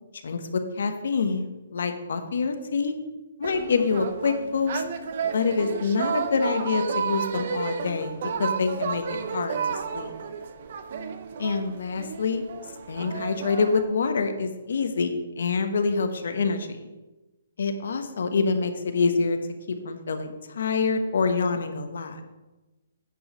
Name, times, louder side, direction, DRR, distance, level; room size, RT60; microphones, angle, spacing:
voice 1, 0.2-2.9 3.4-4.8 5.3-8.1 8.4-10.1 11.4-12.4 12.9-16.8 17.6-19.4 19.7-22.2, left 4 dB, 60° left, 7 dB, 1.0 m, -26 dB
sound 1, 3.4-13.8, right 6 dB, 40° right, 0.7 m, -32 dB
9.3 x 4.7 x 6.4 m, 1.1 s
hypercardioid pair, 170°, 0 cm